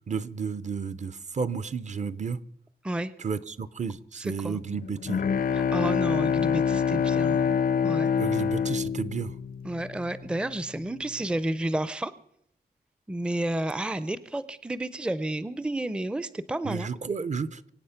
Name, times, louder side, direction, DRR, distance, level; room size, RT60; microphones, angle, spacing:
voice 1, 0.1-2.4 3.2-5.2 8.2-9.3 16.6-17.7, right 5 dB, 45° right, 16 dB, 0.6 m, -32 dB
voice 2, 4.2-4.6 5.5-7.5 7.8-8.1 9.6-12.1 13.1-16.9, right 1 dB, 5° right, 15 dB, 0.5 m, -31 dB
Bowed string instrument, 4.7-10.2, left 7 dB, 60° left, 0.5 m, -26 dB
24.5 x 8.7 x 5.7 m, 0.75 s
wide cardioid pair, 170°, 17 cm